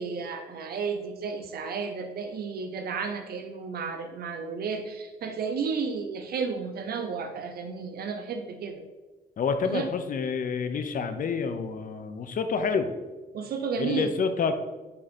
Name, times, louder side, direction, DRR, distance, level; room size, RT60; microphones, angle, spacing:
voice 1, 0.0-8.8 9.6-9.9 13.3-14.1, right 5 dB, 70° right, 6 dB, 0.8 m, -32 dB
voice 2, 9.4-12.9 13.8-14.5, left 5 dB, 55° left, 9 dB, 0.8 m, -28 dB
9.9 x 3.8 x 4.3 m, 1.2 s
cardioid pair, 105°, 17 cm